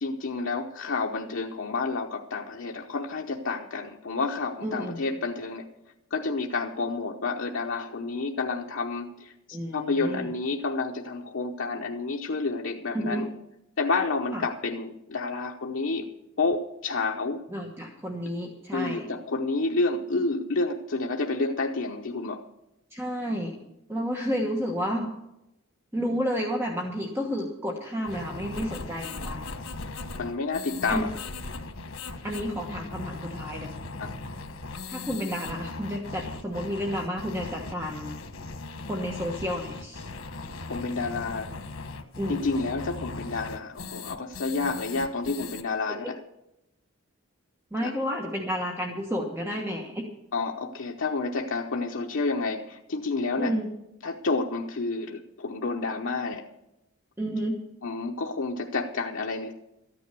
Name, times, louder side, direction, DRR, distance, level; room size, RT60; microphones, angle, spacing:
voice 1, 0.0-5.7 6.1-13.3 13.8-16.1 16.4-17.4 18.7-22.4 30.2-31.1 34.0-34.1 40.7-41.5 42.3-46.2 47.8-47.9 50.3-53.6 54.0-56.5 57.8-59.5, left 3 dB, 65° left, 2 dB, 0.8 m, -29 dB
voice 2, 4.6-5.0 9.5-10.3 12.9-13.3 14.3-14.4 17.5-19.1 22.9-23.6 23.9-25.1 25.9-29.5 30.9-31.1 32.2-33.7 34.9-38.2 38.9-40.1 42.2-42.4 45.9-46.0 47.7-50.0 53.4-53.7 57.2-57.6, equal, 10° right, 0 dB, 1.2 m, -31 dB
sound 1, 28.0-45.6, left 3 dB, 90° left, 1.3 m, -38 dB
13.5 x 9.7 x 6.7 m, 0.87 s
head